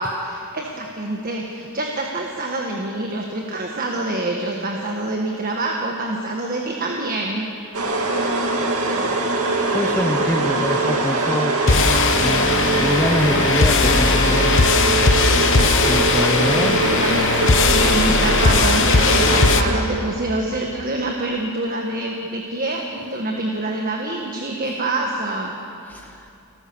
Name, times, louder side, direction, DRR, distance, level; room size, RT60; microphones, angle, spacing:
voice 1, 0.0-7.5 16.1-25.5, right 2 dB, 40° right, 1 dB, 1.6 m, -26 dB
sound 1, 7.7-20.1, right 2 dB, 80° right, 2.5 m, -22 dB
voice 2, 9.7-14.6 15.9-16.8 25.9-26.3, left 1 dB, 10° left, 3 dB, 0.8 m, -25 dB
sound 2, 11.7-19.6, left 4 dB, 60° left, 1.0 m, -18 dB
29.5 x 13.5 x 7.0 m, 2.5 s
head